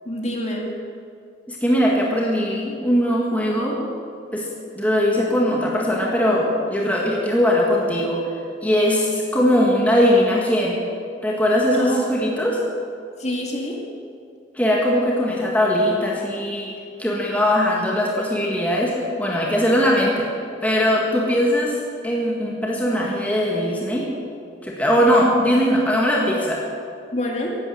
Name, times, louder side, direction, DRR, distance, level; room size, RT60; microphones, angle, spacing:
voice 1, 0.0-0.7 11.7-12.0 13.2-13.8 25.1-25.2 27.1-27.6, left 1 dB, 40° left, 0 dB, 2.5 m, -27 dB
voice 2, 1.5-3.8 4.3-4.5 4.7-8.2 8.6-10.8 11.2-12.6 14.6-16.7 17.0-20.3 20.6-21.8 22.0-24.1 24.6-26.6, equal, 10° left, -3 dB, 1.8 m, -20 dB
15.0 x 11.5 x 7.8 m, 2.4 s
head